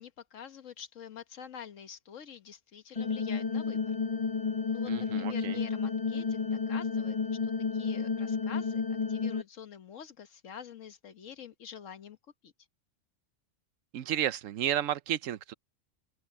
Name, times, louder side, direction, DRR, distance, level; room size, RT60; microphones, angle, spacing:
voice 1, 0.0-3.9 4.6-7.2 7.4-12.2 12.4-12.5, left 8 dB, 80° left, 1.5 m, -47 dB
sound 1, 3.0-9.4, left 5 dB, 35° left, 0.7 m, -31 dB
voice 2, 4.9-5.6 13.9-15.5, right 11 dB, 85° right, 1.1 m, -32 dB
open air
omnidirectional pair, 1.3 m